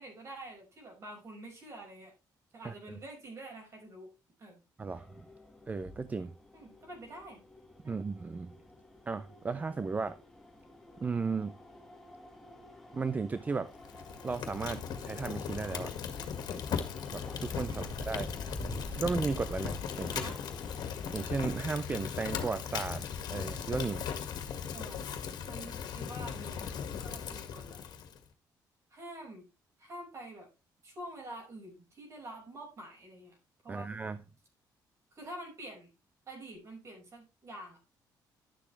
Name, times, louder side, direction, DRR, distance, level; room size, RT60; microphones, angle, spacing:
voice 1, 0.0-2.1 2.5-4.1 4.4-4.6 6.5-7.4 7.8-8.0 17.7-17.9 20.0-20.4 24.7-25.2 25.5-27.8 28.9-29.5 29.8-30.5 30.8-33.4 33.6-34.0 35.1-35.9 36.3-37.9, right 1 dB, 40° right, 5.4 m, -47 dB
sound 1, 4.9-21.3, left 1 dB, 5° left, 1.8 m, -48 dB
voice 2, 5.7-6.3 7.8-8.5 9.1-10.2 11.0-11.5 12.9-13.7 14.2-15.9 17.1-18.5 18.9-20.2 21.1-23.0 23.3-24.1 33.7-34.2, right 4 dB, 20° right, 0.5 m, -35 dB
Fire, 13.8-28.2, left 7 dB, 70° left, 1.9 m, -38 dB
11.5 x 7.2 x 3.3 m
cardioid pair, 140°, 7 cm